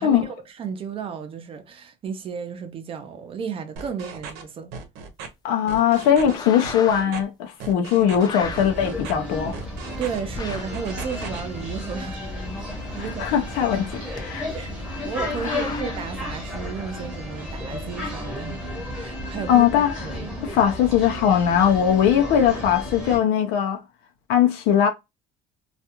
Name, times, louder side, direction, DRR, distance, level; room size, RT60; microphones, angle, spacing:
voice 1, 0.0-4.7 10.0-12.2 12.9-13.9 14.5-19.7 20.0-20.3, right 6 dB, 35° right, 0.6 m, -34 dB
sound 1, 3.8-4.4 4.7-5.3 5.7-6.3 6.6-7.2 7.6-8.3 8.6-9.1 9.5-10.2 10.5-11.4, right 5 dB, 85° right, 0.8 m, -37 dB
voice 2, 5.4-9.6 13.2-14.5 15.4-15.6 19.5-19.9 20.4-23.8 24.3-24.9, left 9 dB, 85° left, 0.6 m, -20 dB
sound 2, 6.2-7.2 8.1-8.8 10.3-10.8 12.4-14.2 15.2-15.8, left 4 dB, 25° left, 0.6 m, -37 dB
sound 3, 8.4-23.2, left 1 dB, 5° right, 0.9 m, -33 dB
2.4 x 2.3 x 2.9 m
cardioid pair, 145°, 17 cm